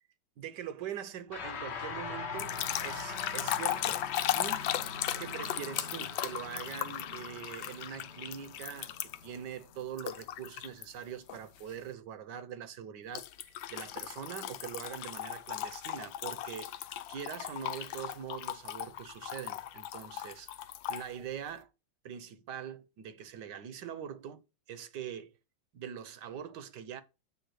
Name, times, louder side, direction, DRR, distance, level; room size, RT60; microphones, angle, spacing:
voice 1, 0.4-4.0 4.3-4.7 5.2-21.7 22.0-24.4 24.7-25.3 25.7-27.0, right 9 dB, 65° right, 1.4 m, -43 dB
sound 1, 1.3-10.8, left 5 dB, 45° left, 0.9 m, -42 dB
sound 2, 2.4-9.4 10.0-10.8 11.3-11.6 13.1-21.1, left 12 dB, 80° left, 1.3 m, -37 dB
8.0 x 3.6 x 6.3 m
omnidirectional pair, 2.1 m